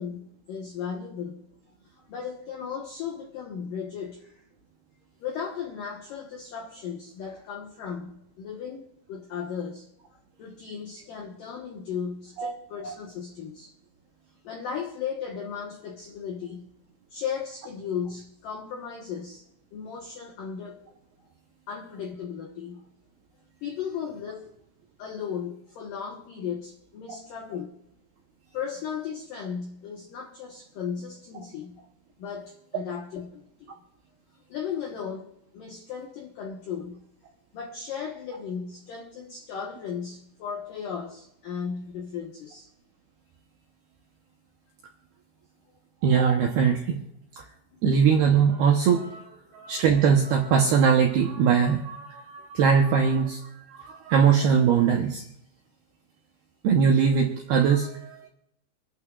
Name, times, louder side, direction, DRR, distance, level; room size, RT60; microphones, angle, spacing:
voice 1, 0.0-1.4 1.9-4.4 5.2-9.9 10.4-13.7 14.4-16.7 17.1-19.4 19.7-20.8 21.7-22.8 23.6-24.5 25.0-27.7 28.5-31.9 32.2-33.7 34.5-37.0 37.5-42.7, left 7 dB, 90° left, 1 dB, 1.9 m, -36 dB
voice 2, 46.0-47.0 47.4-47.5 47.8-49.3 49.5-53.4 53.7-55.2 56.6-58.3, right 6 dB, 80° right, 1 dB, 2.3 m, -21 dB
27.0 x 12.0 x 2.4 m, 0.78 s
omnidirectional pair, 6.0 m